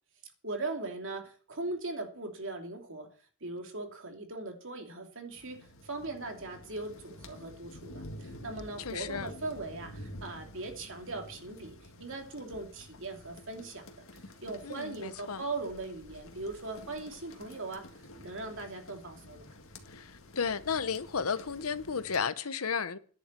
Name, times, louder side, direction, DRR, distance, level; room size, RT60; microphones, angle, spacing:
voice 1, 0.4-3.1 3.4-13.8 14.1-17.9 18.2-19.5, right 2 dB, 60° right, 3.0 m, -39 dB
sound 1, 5.3-22.2, left 1 dB, 65° left, 2.0 m, -50 dB
voice 2, 8.8-9.3 14.6-15.4 19.9-23.0, left 6 dB, 85° left, 1.0 m, -33 dB
10.5 x 7.4 x 8.4 m
head